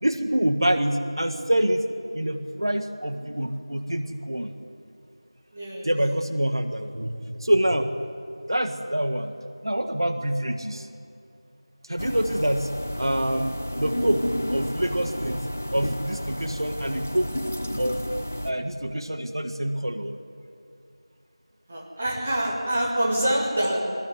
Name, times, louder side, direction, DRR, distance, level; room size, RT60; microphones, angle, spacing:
voice 1, 0.0-1.8 2.1-4.5 5.8-7.9 8.5-9.3 9.6-10.9 11.9-12.7 13.0-15.4 15.7-17.3 17.8-18.0 18.4-20.2, right 1 dB, 55° right, 8 dB, 1.7 m, -26 dB
voice 2, 5.5-5.9 21.7-23.8, right 1 dB, 10° right, -3 dB, 1.5 m, -25 dB
sound 1, 12.0-18.5, equal, 15° left, 0.5 m, -31 dB
21.0 x 19.5 x 9.6 m, 2.5 s
figure-of-eight pair, 180°, 3 cm